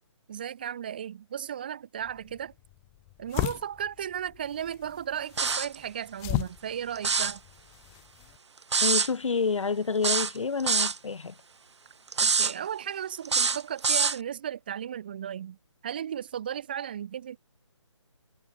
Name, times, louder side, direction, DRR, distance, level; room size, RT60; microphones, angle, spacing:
voice 1, 0.3-2.5 3.2-7.4 12.2-15.6 15.8-17.4, right 9 dB, 20° right, 0.4 m, -35 dB
sound 1, 2.0-8.4, left 29 dB, 15° left, 1.3 m, -37 dB
sound 2, 5.4-5.8 7.0-7.4 8.7-9.1 10.0-11.0 12.1-12.5 13.3-14.2, right 5 dB, 65° right, 0.8 m, -25 dB
voice 2, 8.8-11.3, left 5 dB, 85° left, 0.5 m, -28 dB
figure-of-eight pair, 150°, 16 cm